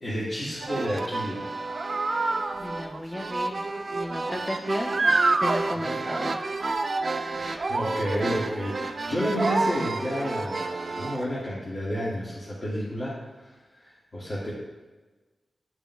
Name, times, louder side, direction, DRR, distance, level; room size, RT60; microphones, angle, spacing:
voice 1, 0.0-1.5 5.7-6.2 7.3-14.5, equal, 45° left, -9 dB, 1.7 m, -31 dB
sound 1, 0.6-11.3, right 3 dB, 50° right, 0.5 m, -28 dB
voice 2, 2.6-3.6 3.9-5.0 5.4-6.4 6.9-7.1, left 1 dB, 15° left, 2 dB, 0.5 m, -34 dB
11.0 x 5.0 x 2.3 m, 1.2 s
wide cardioid pair, 75°, 0 cm